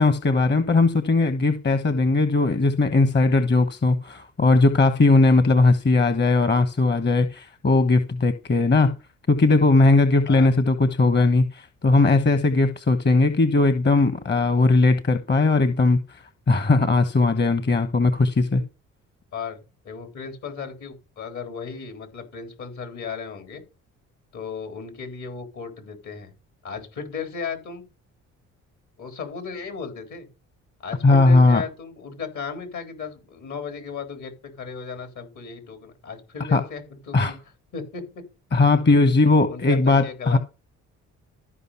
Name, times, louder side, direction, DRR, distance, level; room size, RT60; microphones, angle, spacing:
voice 1, 0.0-8.9 9.3-18.6 31.0-31.6 36.5-36.6 37.1-37.3 38.5-40.4, left 3 dB, 35° left, 1.2 m, -19 dB
voice 2, 19.8-23.6 24.3-26.3 26.6-27.9 29.0-30.3 30.8-37.4 37.7-38.2 38.9-39.1 39.5-40.4, left 5 dB, 65° left, 3.9 m, -35 dB
13.5 x 5.3 x 5.6 m
supercardioid pair, 70°, 31 cm